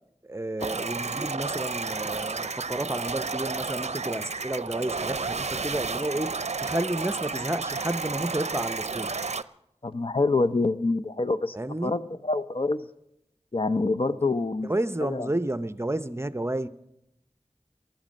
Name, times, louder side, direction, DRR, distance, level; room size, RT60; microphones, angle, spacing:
voice 1, 0.2-9.2 11.5-11.9 14.6-16.7, right 1 dB, 20° right, 13 dB, 0.7 m, -31 dB
sound 1, 0.6-9.4, right 4 dB, 65° right, 0.5 m, -32 dB
voice 2, 9.8-11.5 11.8-12.8 13.5-14.7 15.0-15.3, left 3 dB, 50° left, 11 dB, 0.7 m, -26 dB
19.0 x 13.0 x 5.3 m, 0.80 s
wide cardioid pair, 45°, 12 cm